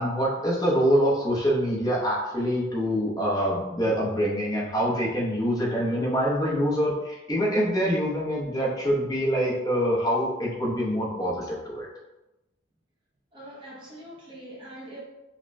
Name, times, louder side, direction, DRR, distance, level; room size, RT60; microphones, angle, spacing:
voice 1, 0.0-11.9, equal, 20° left, -5 dB, 0.7 m, -25 dB
voice 2, 13.3-15.0, right 1 dB, 25° right, -5 dB, 0.6 m, -43 dB
5.1 x 2.2 x 2.5 m, 1.0 s
head